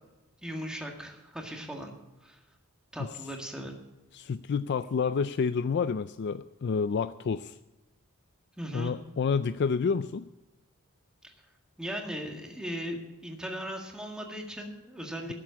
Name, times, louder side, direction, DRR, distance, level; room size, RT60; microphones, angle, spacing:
voice 1, 0.4-1.9 2.2-2.4 2.9-3.7 8.6-8.9 11.2-11.3 11.8-15.3, equal, 5° right, 1 dB, 1.8 m, -38 dB
voice 2, 4.1-7.6 8.7-10.3, left 5 dB, 50° left, 13 dB, 0.4 m, -29 dB
13.0 x 7.6 x 8.5 m, 1.0 s
head